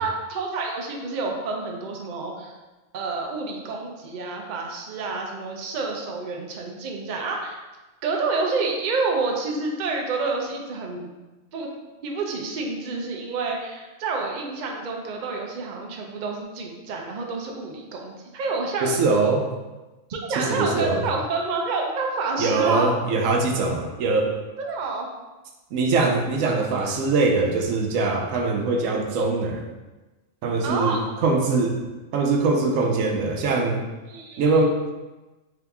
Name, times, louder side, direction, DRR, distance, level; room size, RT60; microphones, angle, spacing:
voice 1, 0.0-2.5 2.9-7.6 8.0-11.1 11.5-11.7 12.0-19.0 20.1-22.9 24.6-25.1 30.6-31.0 34.1-34.5, right 3 dB, 50° right, 0 dB, 0.5 m, -28 dB
voice 2, 18.8-19.5 20.4-21.0 22.4-24.3 25.7-29.7 30.4-31.8 32.1-33.8 34.4-34.9, right 3 dB, 85° right, 2 dB, 1.0 m, -22 dB
3.7 x 2.9 x 3.5 m, 1.1 s
omnidirectional pair, 1.3 m